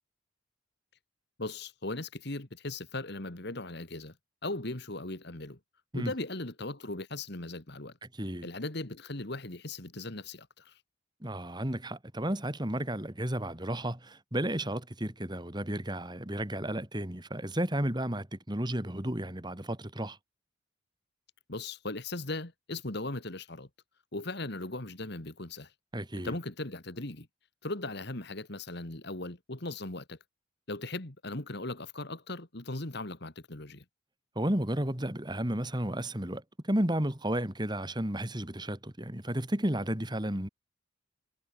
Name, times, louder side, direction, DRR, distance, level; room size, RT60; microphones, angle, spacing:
voice 1, 1.4-4.1 4.4-5.6 5.9-7.9 8.4-10.7 21.5-23.7 24.1-25.7 26.1-27.3 27.6-30.2 30.7-33.8, left 2 dB, 50° left, 2.1 m, -38 dB
voice 2, 8.0-8.5 11.2-20.2 25.9-26.3 34.4-40.5, right 1 dB, 20° right, 2.3 m, -33 dB
head